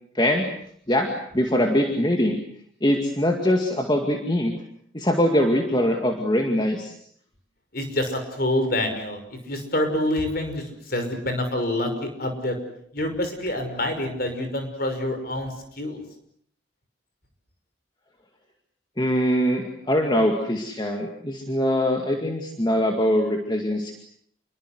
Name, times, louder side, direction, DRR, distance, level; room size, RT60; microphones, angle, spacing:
voice 1, 0.1-0.5 0.9-2.4 2.8-4.5 4.9-6.9 19.0-24.0, equal, 20° left, 3 dB, 2.1 m, -22 dB
voice 2, 7.7-12.6 12.9-16.0, left 1 dB, 50° left, 6 dB, 5.8 m, -27 dB
28.0 x 22.5 x 8.1 m, 0.66 s
head